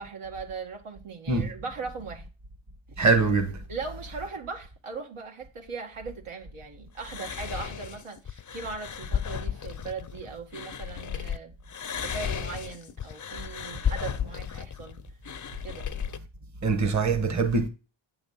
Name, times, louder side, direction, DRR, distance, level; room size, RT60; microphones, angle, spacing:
voice 1, 0.0-2.3 2.9-3.0 3.7-11.5 11.9-15.0 15.6-15.9, right 4 dB, 80° right, 1.9 m, -39 dB
voice 2, 3.0-3.6 16.6-17.7, right 4 dB, 35° right, 1.1 m, -23 dB
sound 1, 7.0-11.4 11.7-16.2, left 8 dB, 40° left, 0.6 m, -34 dB
8.7 x 3.9 x 7.0 m
wide cardioid pair, 120°, 50 cm